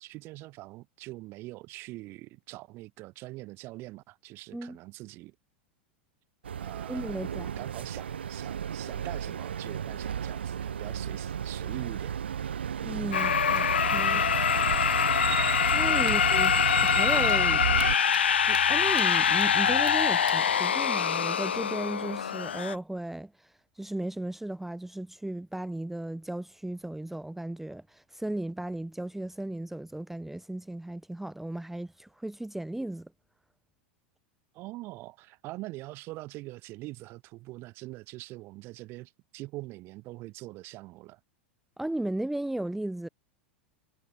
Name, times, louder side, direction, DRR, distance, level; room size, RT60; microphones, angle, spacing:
voice 1, 0.0-5.4 6.6-12.2 16.0-16.2 34.5-41.2, right 20 dB, 40° right, 1.9 m, -43 dB
sound 1, 6.4-18.0, right 8 dB, 75° right, 0.4 m, -33 dB
voice 2, 6.9-7.5 12.8-14.3 15.7-16.5 16.8-17.6 18.5-33.1 41.8-43.1, right 1 dB, 5° right, 0.5 m, -35 dB
sound 2, 13.1-22.8, left 7 dB, 75° left, 0.3 m, -24 dB
Bird vocalization bird call bird song, 13.1-20.7, right 16 dB, 60° right, 2.0 m, -42 dB
figure-of-eight pair, 90°, 6 cm